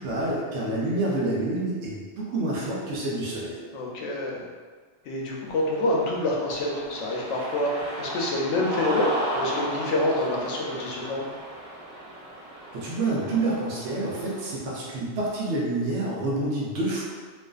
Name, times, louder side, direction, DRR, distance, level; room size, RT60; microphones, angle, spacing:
voice 1, 0.0-3.5 12.7-17.0, right 2 dB, 75° right, -5 dB, 1.0 m, -28 dB
voice 2, 3.7-4.5 5.1-7.7 8.0-11.2, left 1 dB, 90° left, -2 dB, 0.9 m, -27 dB
Cheering, 5.3-14.6, right 1 dB, 45° right, 0.5 m, -35 dB
2.5 x 2.4 x 2.3 m, 1.5 s
omnidirectional pair, 1.2 m